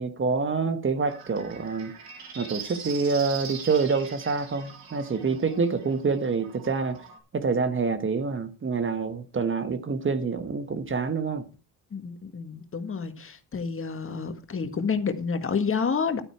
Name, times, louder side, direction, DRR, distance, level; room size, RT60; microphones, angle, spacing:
voice 1, 0.0-1.9 2.3-7.0 7.3-11.4, right 4 dB, 35° right, 1.3 m, -27 dB
sound 1, 1.1-7.2, right 6 dB, 75° right, 3.9 m, -42 dB
voice 2, 11.9-16.2, left 5 dB, 35° left, 1.8 m, -29 dB
12.5 x 9.1 x 4.8 m
cardioid pair, 105°, 36 cm